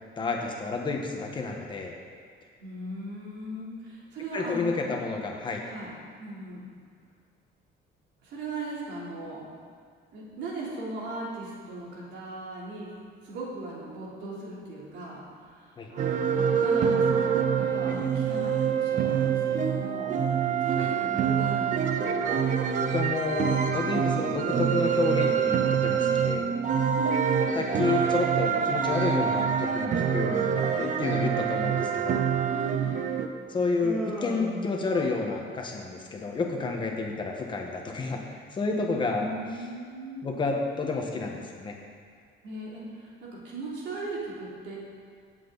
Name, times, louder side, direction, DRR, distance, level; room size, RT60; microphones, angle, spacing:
voice 1, 0.2-1.9 4.3-5.6 15.8-15.9 20.8-20.9 22.9-26.5 27.6-32.2 33.5-39.3 40.2-41.7, left 3 dB, 25° left, 1 dB, 1.3 m, -30 dB
voice 2, 2.6-4.8 5.6-6.7 8.2-9.5 10.1-12.9 13.2-22.1 26.9-27.8 32.5-33.0 39.1-40.4 42.4-44.8, right 2 dB, 70° right, -5 dB, 3.4 m, -38 dB
sound 1, 16.0-33.3, right 7 dB, 40° right, 0.7 m, -26 dB
Human voice, 33.8-35.5, right 1 dB, 10° right, 1.9 m, -36 dB
17.0 x 7.9 x 4.0 m, 2.1 s
cardioid pair, 175°, 19 cm